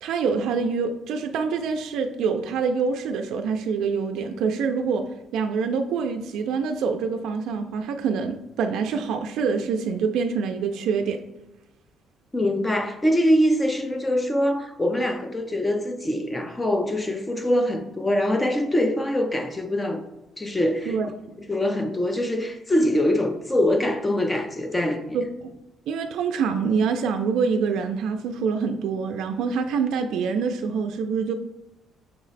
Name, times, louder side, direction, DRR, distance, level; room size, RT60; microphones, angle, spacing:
voice 1, 0.0-11.2 20.9-21.1 25.1-25.5 25.9-31.3, right 5 dB, 70° right, 0.3 m, -25 dB
voice 2, 12.3-20.0 20.4-20.9 21.5-25.2, left 1 dB, 10° left, 0.3 m, -23 dB
5.6 x 2.1 x 3.9 m
cardioid pair, 175°, 0 cm